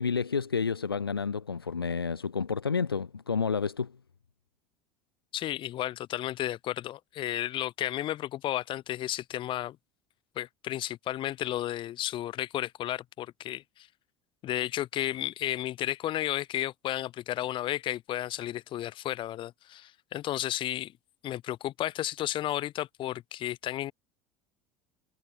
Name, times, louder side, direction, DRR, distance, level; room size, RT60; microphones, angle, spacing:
voice 1, 0.0-3.9, left 5 dB, 85° left, 0.4 m, -30 dB
voice 2, 5.3-9.8 10.3-13.9 14.4-20.9 21.2-23.9, left 13 dB, 45° left, 1.4 m, -33 dB
figure-of-eight pair, 65°, 12 cm